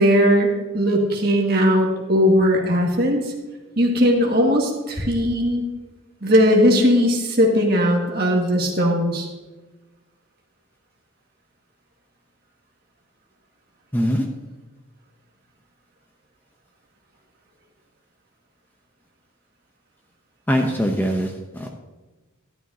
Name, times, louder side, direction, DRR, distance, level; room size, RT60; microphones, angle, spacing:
voice 1, 0.0-3.2 3.8-5.6 6.2-9.3, equal, 45° right, 0 dB, 1.9 m, -18 dB
voice 2, 13.9-14.3 20.5-21.7, equal, 10° left, 2 dB, 0.7 m, -22 dB
12.5 x 11.0 x 2.8 m, 1.2 s
head